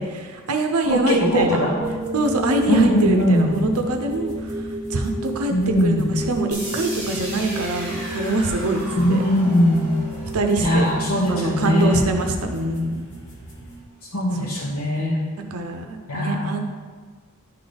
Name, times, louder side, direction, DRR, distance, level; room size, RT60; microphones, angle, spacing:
voice 1, 0.0-1.6 2.1-5.5 5.8-8.8 9.1-9.2 10.3-10.9 11.3-13.0 15.5-16.6, right 2 dB, 80° right, 4 dB, 0.7 m, -24 dB
sound 1, 0.8-12.9, equal, 15° right, 0.6 m, -32 dB
voice 2, 0.9-1.9 2.7-3.6 5.5-6.2 9.0-9.9 10.6-12.1 14.1-15.2 16.1-16.6, equal, 85° left, -5 dB, 1.0 m, -20 dB
sound 2, 1.8-13.8, right 1 dB, 55° left, 1.6 m, -42 dB
sound 3, 6.5-12.4, right 1 dB, 15° left, 1.9 m, -37 dB
11.0 x 3.9 x 3.4 m, 1.5 s
head